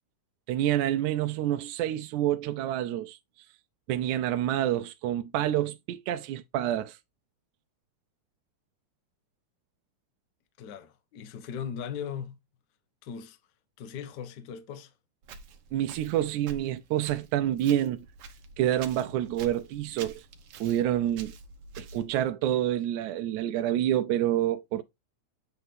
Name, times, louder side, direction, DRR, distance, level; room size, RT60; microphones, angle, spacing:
voice 1, 0.5-3.5 3.9-7.0 15.7-18.1 18.6-20.3 20.6-21.3 21.8-24.8, right 12 dB, 80° right, 1.9 m, -28 dB
voice 2, 10.6-12.4 13.0-13.4 13.8-14.9, left 7 dB, 85° left, 0.9 m, -38 dB
Walk footsteps, 15.2-22.2, right 5 dB, 60° right, 1.6 m, -48 dB
8.0 x 4.1 x 3.7 m
omnidirectional pair, 3.5 m